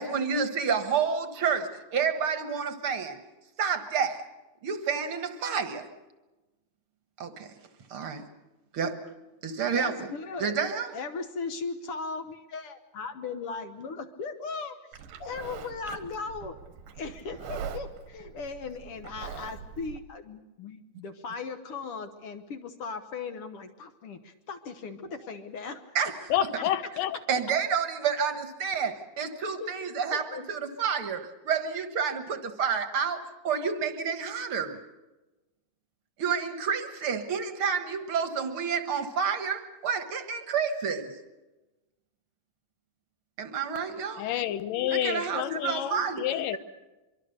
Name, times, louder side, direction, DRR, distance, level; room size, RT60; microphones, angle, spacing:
voice 1, 0.0-3.2 3.6-4.2 4.6-5.9 7.2-7.5 7.9-8.3 8.7-9.0 9.4-9.9 10.4-10.9 25.9-26.3 27.3-34.8 36.2-41.1 43.4-44.3 44.9-46.2, right 6 dB, 55° right, 1.7 m, -29 dB
voice 2, 9.7-10.6 10.9-14.8 15.2-16.6 16.9-26.0 26.6-26.9 29.6-30.4, left 4 dB, 60° left, 1.5 m, -38 dB
Livestock farm animals working animals, 14.9-20.0, right 7 dB, 90° right, 3.0 m, -42 dB
voice 3, 26.3-27.2 44.2-46.6, left 12 dB, 85° left, 2.6 m, -29 dB
24.5 x 23.5 x 6.6 m
omnidirectional pair, 3.8 m